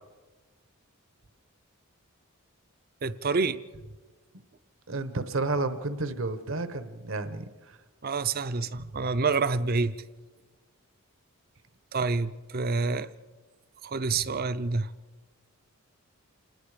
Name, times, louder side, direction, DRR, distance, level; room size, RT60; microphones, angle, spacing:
voice 1, 3.0-3.6 8.0-10.0 11.9-13.1 13.8-14.9, right 4 dB, 45° right, 14 dB, 0.6 m, -27 dB
voice 2, 4.9-7.4, right 3 dB, 65° right, 11 dB, 1.1 m, -31 dB
27.0 x 20.0 x 5.0 m, 1.3 s
head